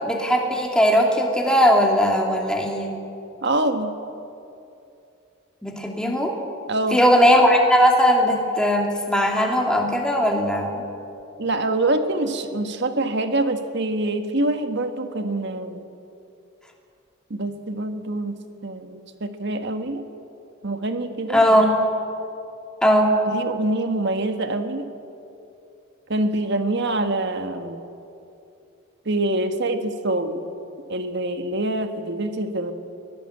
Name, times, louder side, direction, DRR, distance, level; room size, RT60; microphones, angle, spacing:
voice 1, 0.0-3.0 5.6-6.3 6.9-10.7 21.3-21.7 22.8-23.1, equal, 5° left, 0 dB, 2.7 m, -18 dB
voice 2, 3.4-3.9 6.7-7.0 11.4-15.8 17.3-18.3 18.6-20.0 20.6-21.4 23.3-24.8 26.1-27.8 29.0-30.5 30.9-32.7, right 2 dB, 55° right, 7 dB, 1.6 m, -25 dB
23.0 x 17.5 x 8.0 m, 2.7 s
head